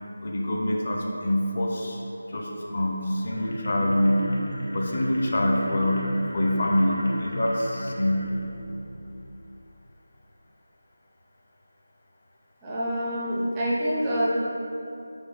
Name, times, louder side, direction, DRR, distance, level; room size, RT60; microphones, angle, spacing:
voice 1, 0.2-2.0 2.3-4.2 4.7-6.1 6.3-8.2, left 1 dB, 35° left, -1 dB, 0.7 m, -25 dB
sound 1, 3.1-9.4, equal, 85° left, 1.4 m, -35 dB
voice 2, 12.6-14.3, equal, 10° right, -7 dB, 0.5 m, -26 dB
5.3 x 4.1 x 5.4 m, 2.8 s
figure-of-eight pair, 175°, 0 cm